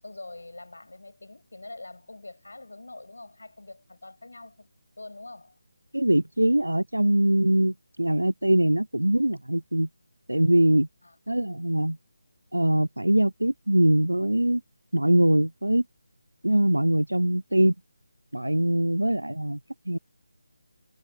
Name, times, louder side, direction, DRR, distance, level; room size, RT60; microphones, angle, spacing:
voice 1, 0.0-4.7 5.0-5.6 11.0-11.2, left 2 dB, 70° left, 7.5 m, -44 dB
voice 2, 5.9-9.9 10.3-10.9 11.3-12.0 12.5-14.6 14.9-15.8 16.4-17.7 18.3-19.6 19.9-20.0, right 1 dB, 90° right, 0.4 m, -22 dB
figure-of-eight pair, 155°, 0 cm